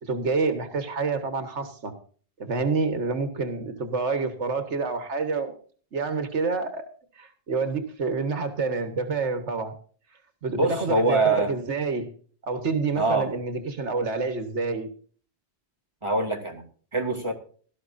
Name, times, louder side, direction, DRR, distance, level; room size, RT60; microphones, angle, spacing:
voice 1, 0.0-1.9 2.4-5.5 5.9-6.9 7.2-9.7 10.4-12.1 12.4-14.9, right 4 dB, 80° right, 8 dB, 1.7 m, -28 dB
voice 2, 10.5-11.5 13.0-13.3 16.0-16.6 16.9-17.3, right 2 dB, 25° right, 2 dB, 2.7 m, -24 dB
17.5 x 13.0 x 2.6 m, 0.44 s
omnidirectional pair, 1.2 m